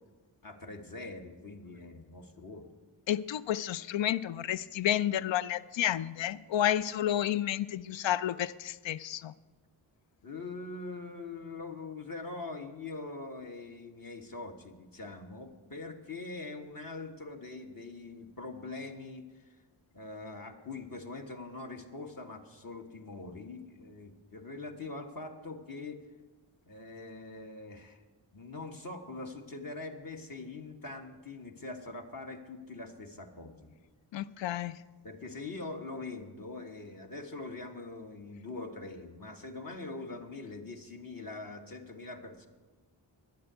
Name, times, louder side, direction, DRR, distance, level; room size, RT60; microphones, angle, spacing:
voice 1, 0.4-2.7 10.2-19.6 19.9-26.0 26.7-28.0 28.3-33.7 35.0-42.5, left 3 dB, 45° left, 3 dB, 1.6 m, -43 dB
voice 2, 3.1-9.3 34.1-34.7, left 11 dB, 70° left, 17 dB, 0.6 m, -31 dB
10.5 x 8.6 x 8.1 m, 1.3 s
cardioid pair, 40°, 47 cm